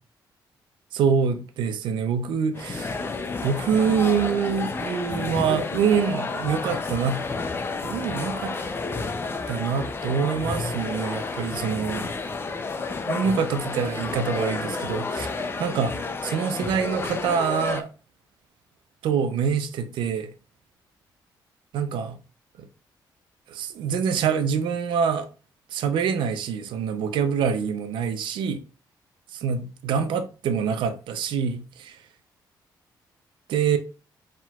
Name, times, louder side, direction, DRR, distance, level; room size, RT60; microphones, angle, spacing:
voice 1, 0.9-3.0 3.4-7.2 7.8-8.6 9.5-12.1 13.1-15.3 15.6-15.9 16.2-17.9 19.0-20.3 21.7-22.2 22.6-22.7 23.5-25.3 25.7-28.6 29.3-32.0 33.5-33.8, right 6 dB, 90° right, 0.6 m, -25 dB
sound 1, 2.5-17.8, left 3 dB, 30° left, 0.5 m, -31 dB
4.6 x 3.7 x 2.3 m
cardioid pair, 105°, 8 cm